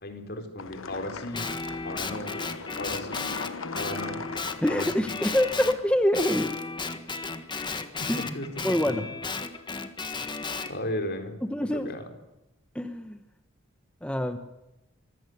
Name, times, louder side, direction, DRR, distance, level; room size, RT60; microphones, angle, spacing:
voice 1, 0.0-1.5 1.8-2.4 2.8-3.2 3.8-4.2 4.7-5.1 8.2-8.5 8.8-9.0 10.6-11.3 11.7-12.0, left 1 dB, 55° left, 6 dB, 4.2 m, -35 dB
sound 1, 0.6-6.0, left 4 dB, 80° left, 1.2 m, -40 dB
Guitar, 1.3-5.8 6.1-10.7, left 4 dB, 25° left, 1.6 m, -34 dB
voice 2, 4.6-6.5 8.1-9.0 11.4-11.9 12.7-13.2 14.0-14.4, equal, 5° left, 7 dB, 1.1 m, -26 dB
25.5 x 16.5 x 9.6 m, 0.92 s
head